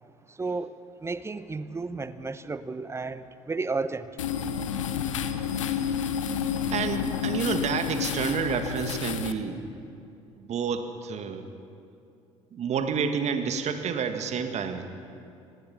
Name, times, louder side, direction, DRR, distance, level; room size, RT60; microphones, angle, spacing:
voice 1, 0.3-0.7 1.0-4.1, right 3 dB, 15° right, 14 dB, 1.0 m, -32 dB
sound 1, 4.2-9.3, left 8 dB, 75° left, 0.9 m, -30 dB
voice 2, 5.2-5.8 6.7-9.6 10.4-11.4 12.5-14.8, right 6 dB, 45° right, 7 dB, 1.9 m, -29 dB
25.0 x 20.0 x 5.8 m, 2.6 s
figure-of-eight pair, 55°, 16 cm